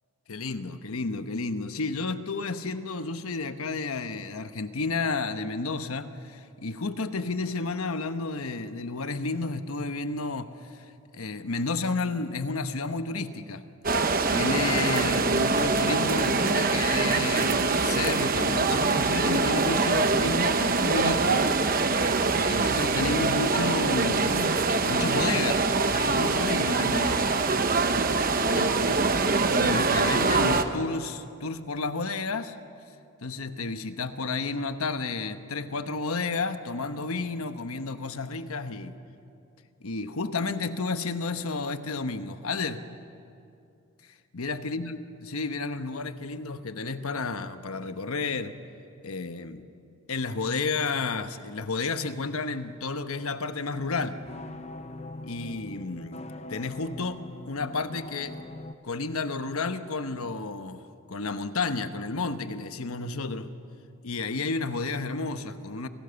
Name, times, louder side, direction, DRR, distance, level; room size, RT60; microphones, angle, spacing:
voice 1, 0.3-10.8 11.1-13.6 13.9-21.5 22.3-27.3 28.5-28.9 29.5-32.6 33.2-38.9 39.8-42.8 44.3-48.5 49.0-49.7 50.1-54.2 55.2-58.3 58.8-60.8 61.1-63.5 64.0-65.9, left 3 dB, 85° left, 9 dB, 1.1 m, -31 dB
sound 1, 13.8-30.6, right 3 dB, 40° right, 1.0 m, -24 dB
sound 2, 53.8-58.7, left 2 dB, 30° left, 0.7 m, -42 dB
28.5 x 18.5 x 6.9 m, 2.5 s
head